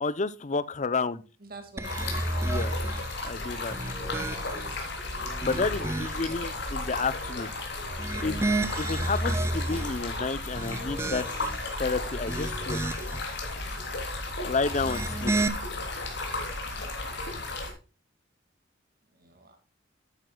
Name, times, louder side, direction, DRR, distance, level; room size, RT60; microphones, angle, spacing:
voice 1, 0.0-1.2 2.4-2.8 3.2-3.8 5.4-7.5 8.2-8.5 8.8-11.3 11.8-12.8 14.4-15.5, left 4 dB, 40° left, 0.6 m, -30 dB
voice 2, 1.4-2.3 6.3-6.8 7.2-7.4 19.1-19.6, right 3 dB, 50° right, 2.0 m, -48 dB
Stream, 1.8-17.7, left 2 dB, 60° left, 3.4 m, -34 dB
sound 1, 1.8-3.1 3.6-4.8 5.3-6.4 7.8-10.0 10.5-11.6 12.1-13.2 14.7-15.5, right 2 dB, 15° right, 0.6 m, -31 dB
12.5 x 9.3 x 2.3 m
head